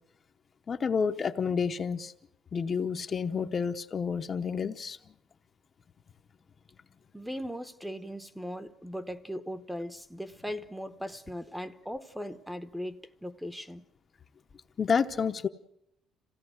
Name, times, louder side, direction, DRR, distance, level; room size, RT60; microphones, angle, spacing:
voice 1, 0.7-2.1 2.5-5.0 14.8-15.5, left 6 dB, 35° left, 0.8 m, -29 dB
voice 2, 7.1-13.8, equal, ahead, 0.9 m, -38 dB
27.0 x 17.0 x 7.9 m
cardioid pair, 140°, 0 cm